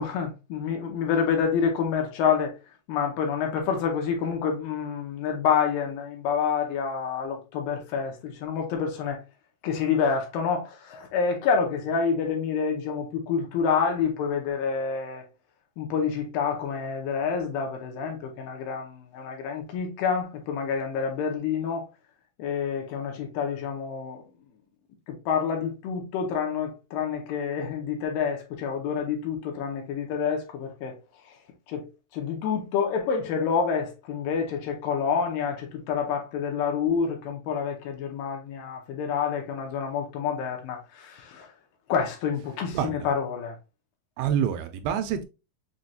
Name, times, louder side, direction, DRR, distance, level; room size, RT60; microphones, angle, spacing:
voice 1, 0.0-2.5 2.9-9.2 9.6-15.2 15.8-21.9 22.4-24.2 25.1-31.0 31.2-31.4 31.7-41.5 41.9-43.6, left 6 dB, 75° left, 2.3 m, -28 dB
voice 2, 42.7-43.1 44.2-45.2, right 8 dB, 80° right, 2.2 m, -27 dB
6.2 x 2.2 x 2.6 m
omnidirectional pair, 4.4 m